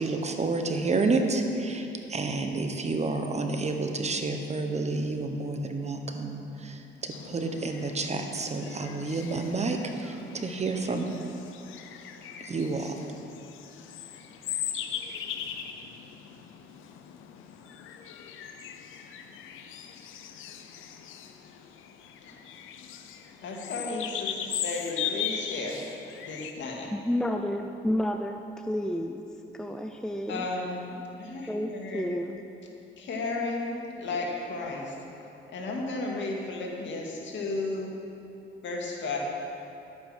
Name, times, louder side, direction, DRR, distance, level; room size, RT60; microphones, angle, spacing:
voice 1, 0.0-11.2 12.4-13.0, right 3 dB, 35° right, 5 dB, 1.2 m, -30 dB
sound 1, 7.1-26.5, left 9 dB, 90° left, 0.8 m, -39 dB
voice 2, 23.4-25.8 26.3-26.9 30.3-32.1 33.0-35.0 35.5-37.9 38.6-39.2, left 3 dB, 70° left, -1 dB, 2.1 m, -34 dB
voice 3, 26.9-29.2 29.5-30.4 31.5-32.4, left 1 dB, 5° left, 5 dB, 0.5 m, -30 dB
11.0 x 8.6 x 6.4 m, 2.9 s
cardioid pair, 90°, 20 cm